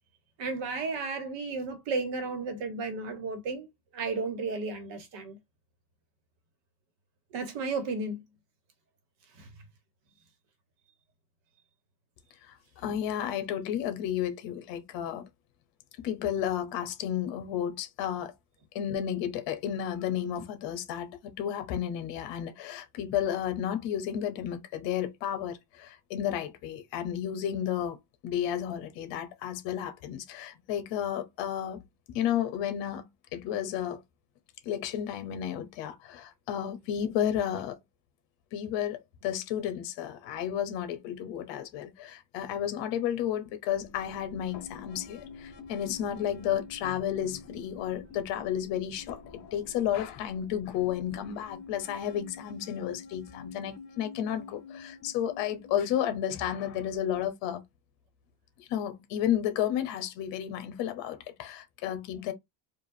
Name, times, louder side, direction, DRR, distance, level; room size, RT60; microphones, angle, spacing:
voice 1, 0.4-3.7 3.9-5.4 7.3-8.2 9.4-9.5, right 3 dB, 60° right, 1.4 m, -33 dB
voice 2, 12.5-15.3 16.0-18.3 18.7-28.0 28.2-31.8 32.1-34.0 34.6-37.8 38.5-57.6 58.6-62.3, left 10 dB, 60° left, 1.1 m, -32 dB
sound 1, 43.7-57.0, left 5 dB, 35° left, 0.8 m, -48 dB
4.7 x 2.6 x 2.7 m
cardioid pair, 170°, 50 cm